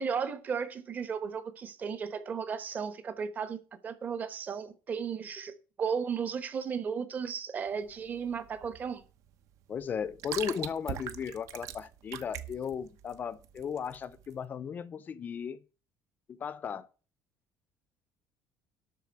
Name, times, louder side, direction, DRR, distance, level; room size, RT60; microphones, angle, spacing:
voice 1, 0.0-9.0, right 6 dB, 25° right, 1.1 m, -35 dB
sound 1, 7.7-14.4, right 10 dB, 55° right, 1.0 m, -42 dB
voice 2, 9.7-15.6 16.3-16.9, left 7 dB, 25° left, 0.6 m, -36 dB
12.5 x 4.3 x 8.0 m
cardioid pair, 180°, 7 cm